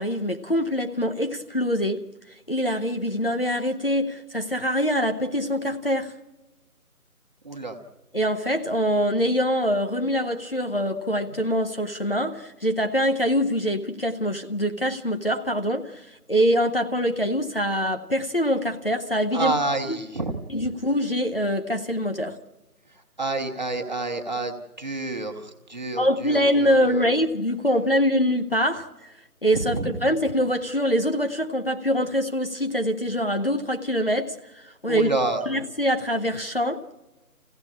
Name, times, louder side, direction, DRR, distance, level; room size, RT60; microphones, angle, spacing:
voice 1, 0.0-2.1 2.5-6.1 8.1-19.5 19.8-20.0 20.5-22.4 26.0-29.1 29.4-35.1 35.5-36.8, equal, 40° left, 0.8 m, -24 dB
voice 2, 7.4-7.8 19.3-20.4 23.2-27.1 29.6-30.0 34.9-35.4, right 3 dB, 30° right, 1.4 m, -29 dB
25.0 x 16.0 x 8.5 m
figure-of-eight pair, 175°, 45 cm